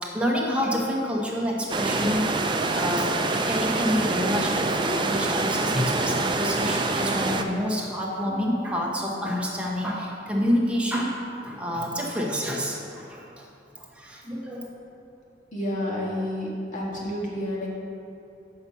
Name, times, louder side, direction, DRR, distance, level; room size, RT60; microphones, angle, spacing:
voice 1, 0.0-2.3 2.7-11.2 11.4-13.5 13.8-14.7, equal, 5° right, -3 dB, 1.1 m, -28 dB
sound 1, 1.7-7.4, right 3 dB, 25° right, 0.4 m, -26 dB
voice 2, 15.5-17.7, left 1 dB, 45° left, -4 dB, 1.7 m, -30 dB
7.8 x 5.5 x 5.5 m, 2.6 s
head